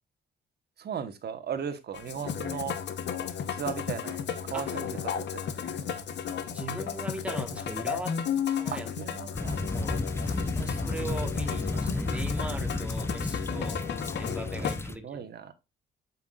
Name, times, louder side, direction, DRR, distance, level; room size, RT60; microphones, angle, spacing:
voice 1, 0.8-2.8 3.5-4.7 5.1-6.0 8.7-9.6 10.6-10.8 14.5-15.5, right 7 dB, 55° right, 1.2 m, -37 dB
Musical instrument, 1.9-14.8, left 8 dB, 60° left, 1.0 m, -34 dB
voice 2, 4.5-5.0 6.4-8.2 8.5-8.9 9.7-13.8 14.2-15.2, right 1 dB, 5° right, 1.4 m, -39 dB
sound 1, 9.3-15.0, left 2 dB, 10° left, 0.6 m, -32 dB
7.4 x 5.8 x 2.4 m
cardioid pair, 90°, 20 cm